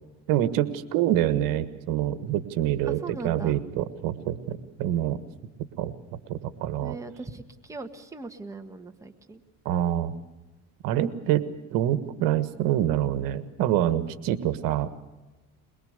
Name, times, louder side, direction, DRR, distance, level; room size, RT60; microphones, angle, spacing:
voice 1, 0.3-5.2 5.8-5.9 6.3-7.0 9.6-10.1 10.8-14.9, right 12 dB, 75° right, 12 dB, 1.6 m, -26 dB
voice 2, 2.9-3.6 6.8-9.4, right 3 dB, 10° right, 4 dB, 1.6 m, -39 dB
22.5 x 22.0 x 6.6 m, 1.1 s
cardioid pair, 125°, 34 cm